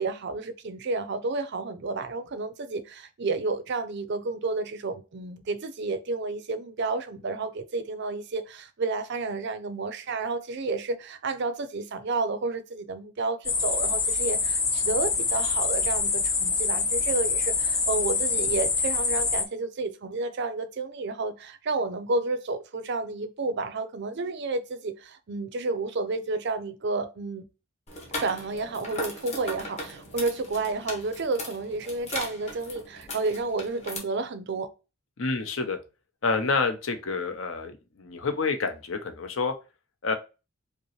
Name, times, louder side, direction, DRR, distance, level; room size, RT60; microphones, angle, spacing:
voice 1, 0.0-27.4 28.2-34.7, right 3 dB, 50° right, 0.5 m, -31 dB
sound 1, 13.4-19.4, left 4 dB, 15° left, 0.4 m, -26 dB
sound 2, 27.9-34.0, left 1 dB, 30° left, 1.0 m, -38 dB
voice 2, 35.2-35.8 36.2-39.5 40.0-40.1, left 4 dB, 65° left, 0.7 m, -28 dB
5.1 x 2.1 x 3.0 m
head